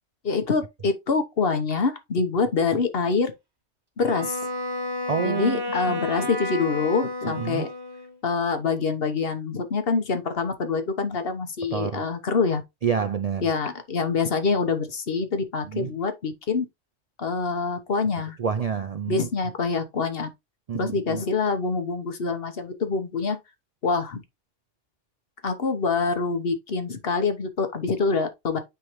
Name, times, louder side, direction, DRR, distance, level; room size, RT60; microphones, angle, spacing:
voice 1, 0.2-3.3 4.0-4.4 5.2-7.7 8.2-12.6 13.4-16.6 17.2-18.4 19.1-20.3 20.7-23.4 23.8-24.2 25.4-28.6, left 4 dB, 55° left, 1.2 m, -25 dB
Wind instrument woodwind instrument, 4.0-8.2, left 2 dB, 20° right, 1.1 m, -31 dB
voice 2, 5.1-6.0 7.3-7.7 11.7-12.0 12.8-13.5 15.7-15.9 18.4-19.3 20.7-21.2, right 6 dB, 70° right, 0.3 m, -28 dB
9.2 x 3.7 x 3.0 m
omnidirectional pair, 1.2 m